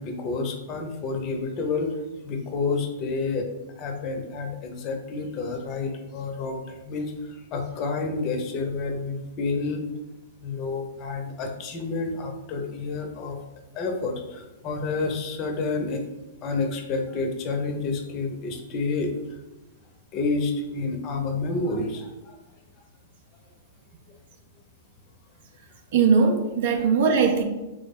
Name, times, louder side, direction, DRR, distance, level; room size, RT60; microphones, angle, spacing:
voice 1, 0.0-2.0 2.2-3.5 3.8-9.9 10.4-13.4 13.7-16.0 16.4-19.1 20.1-22.4 26.7-26.8, left 3 dB, 35° left, 4 dB, 0.5 m, -29 dB
voice 2, 25.9-27.4, right 5 dB, 65° right, 4 dB, 0.4 m, -20 dB
3.3 x 2.0 x 3.6 m, 1.0 s
hypercardioid pair, 130°, 0 cm